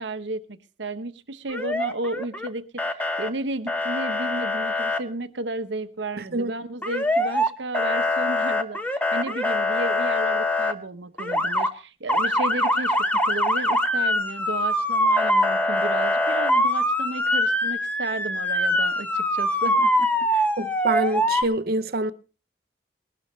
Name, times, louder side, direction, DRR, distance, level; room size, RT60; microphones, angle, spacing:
voice 1, 0.0-13.0 13.2-20.5, right 2 dB, 75° right, 1.0 m, -33 dB
Motor vehicle (road) / Siren, 1.5-2.5 2.8-3.3 3.7-5.0 6.8-7.5 7.7-10.7 11.2-11.7 12.1-21.4, left 1 dB, 10° left, 0.9 m, -23 dB
voice 2, 20.6-22.1, right 2 dB, 55° right, 0.7 m, -25 dB
20.5 x 12.0 x 3.2 m
head